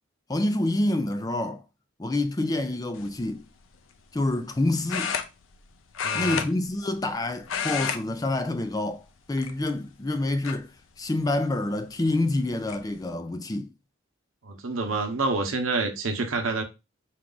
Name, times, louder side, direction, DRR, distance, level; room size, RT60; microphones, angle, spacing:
voice 1, 0.3-1.6 2.0-3.5 4.1-5.1 6.1-9.0 9.3-10.7 11.0-13.7, left 2 dB, 20° left, 0.4 m, -27 dB
sound 1, 3.0-3.2 4.9-5.7 5.9-7.2 7.4-8.0 8.3-8.6 9.3-9.9 10.4-10.5 12.0-12.1 12.4-12.8, left 7 dB, 85° left, 0.6 m, -30 dB
voice 2, 6.0-6.4 14.4-16.6, right 3 dB, 90° right, 0.9 m, -28 dB
4.5 x 2.4 x 3.8 m
head